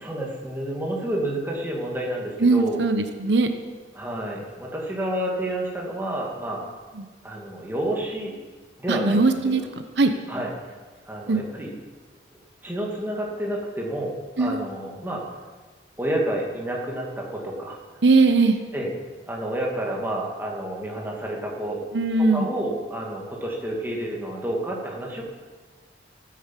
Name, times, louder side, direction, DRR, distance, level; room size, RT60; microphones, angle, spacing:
voice 1, 0.0-2.8 3.9-6.7 7.2-8.4 8.8-9.2 10.3-10.5 11.1-11.7 12.6-15.2 16.0-17.8 18.7-18.9 19.3-21.8 22.3-25.2, right 1 dB, 10° right, -2 dB, 2.4 m, -29 dB
voice 2, 2.4-3.5 6.9-7.1 8.9-9.6 10.0-10.1 11.3-11.5 14.4-14.7 18.0-18.6 21.9-22.5, right 3 dB, 80° right, 7 dB, 1.0 m, -20 dB
15.0 x 9.4 x 7.5 m, 1.4 s
head